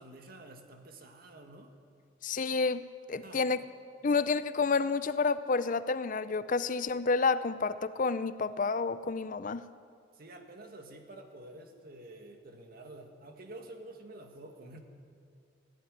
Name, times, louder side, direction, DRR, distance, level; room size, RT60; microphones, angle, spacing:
voice 1, 0.0-1.7 3.1-3.5 10.1-14.8, right 2 dB, 50° right, 4 dB, 2.1 m, -49 dB
voice 2, 2.2-2.8 3.1-3.6 4.0-9.6, left 4 dB, 45° left, 14 dB, 0.5 m, -29 dB
18.0 x 15.0 x 10.0 m, 2.3 s
head